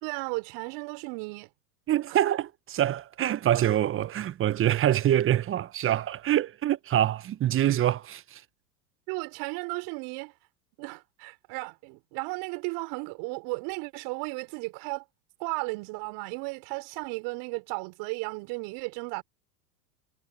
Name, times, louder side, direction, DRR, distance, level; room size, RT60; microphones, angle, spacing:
voice 1, 0.0-1.5 2.1-2.2 9.1-10.3 10.8-15.0 15.4-19.2, right 29 dB, 50° right, 4.7 m, -35 dB
voice 2, 1.9-8.4, right 12 dB, 25° right, 1.1 m, -25 dB
hypercardioid pair, 100°, 48 cm